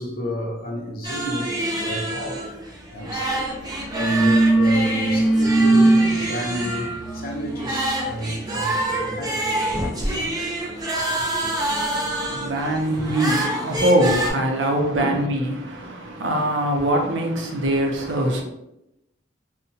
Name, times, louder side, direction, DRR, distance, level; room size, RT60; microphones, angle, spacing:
voice 1, 0.0-2.5 2.9-3.5 4.0-6.9 7.1-9.4 10.0-10.2 10.9-11.6 12.9-13.1 15.0-15.3 16.2-16.5 18.0-18.2, equal, 50° left, 0.6 m, -31 dB
sound 1, 1.0-14.3, right 1 dB, 20° right, 0.5 m, -27 dB
sound 2, 3.2-3.4 3.7-10.3, right 2 dB, 90° left, 0.7 m, -22 dB
voice 2, 11.6-18.4, right 1 dB, 70° right, 0.5 m, -23 dB
2.8 x 2.1 x 2.6 m
head